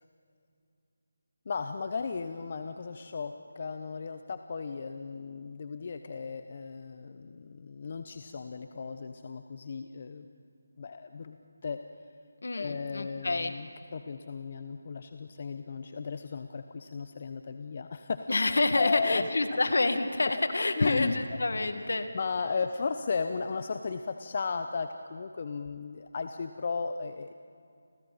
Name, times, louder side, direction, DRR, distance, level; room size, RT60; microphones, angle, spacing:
voice 1, 1.5-10.3 10.8-11.8 12.5-18.3 18.8-19.6 20.8-21.2 21.7-21.9 22.1-27.3, left 5 dB, 40° left, 8 dB, 0.9 m, -35 dB
voice 2, 12.4-13.5 18.3-22.1, left 2 dB, 70° left, 8 dB, 2.0 m, -28 dB
30.0 x 26.5 x 4.2 m, 2.4 s
figure-of-eight pair, 165°, 0 cm